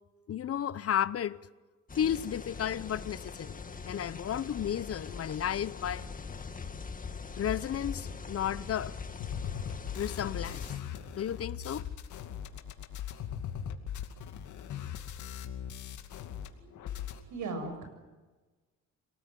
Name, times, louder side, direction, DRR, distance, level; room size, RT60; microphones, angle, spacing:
voice 1, 0.3-1.4 2.0-3.6 3.8-6.0 7.4-9.0 10.0-10.7 11.2-11.8, left 9 dB, 50° left, 0.8 m, -33 dB
sound 1, 1.9-10.8, left 5 dB, 25° left, 2.0 m, -42 dB
sound 2, 9.2-16.5 16.7-17.2, left 9 dB, 75° left, 2.5 m, -39 dB
voice 2, 16.6-17.9, right 3 dB, 75° right, 7.3 m, -40 dB
27.5 x 18.5 x 9.3 m
cardioid pair, 90°, 30 cm